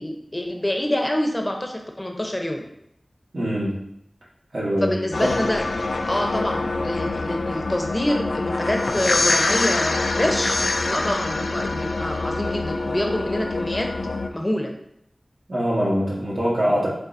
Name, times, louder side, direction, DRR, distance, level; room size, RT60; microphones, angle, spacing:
voice 1, 0.0-2.6 4.8-5.6 6.1-10.6 10.9-13.9 14.3-14.7, left 1 dB, 20° left, 2 dB, 0.8 m, -26 dB
voice 2, 3.3-3.8 4.5-4.9 5.2-5.3 15.5-16.9, equal, 65° right, -6 dB, 1.8 m, -23 dB
sound 1, 5.1-14.3, left 3 dB, 85° left, 0.3 m, -25 dB
5.2 x 3.8 x 2.7 m, 0.76 s
wide cardioid pair, 60°, 0 cm